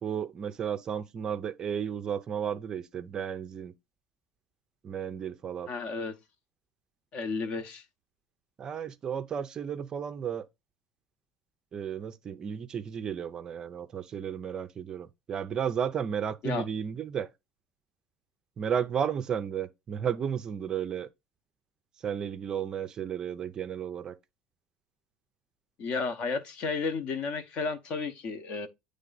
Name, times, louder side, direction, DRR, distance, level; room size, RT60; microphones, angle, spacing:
voice 1, 0.0-3.7 4.8-5.7 8.6-10.4 11.7-17.3 18.6-21.1 22.0-24.1, right 8 dB, 25° right, 0.4 m, -33 dB
voice 2, 5.7-6.1 7.1-7.8 16.4-16.7 25.8-28.7, left 4 dB, 40° left, 0.8 m, -32 dB
8.9 x 3.3 x 3.9 m
cardioid pair, 165°, 3 cm